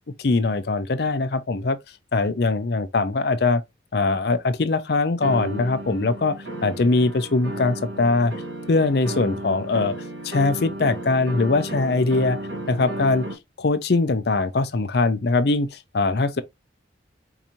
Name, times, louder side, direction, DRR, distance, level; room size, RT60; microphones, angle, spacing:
voice 1, 0.2-1.8 2.1-3.6 3.9-8.3 8.7-9.9 10.2-12.4 12.7-13.3 13.6-16.4, left 3 dB, 60° left, 0.5 m, -22 dB
sound 1, 5.2-13.4, right 1 dB, 80° right, 1.3 m, -33 dB
4.7 x 2.6 x 2.8 m
head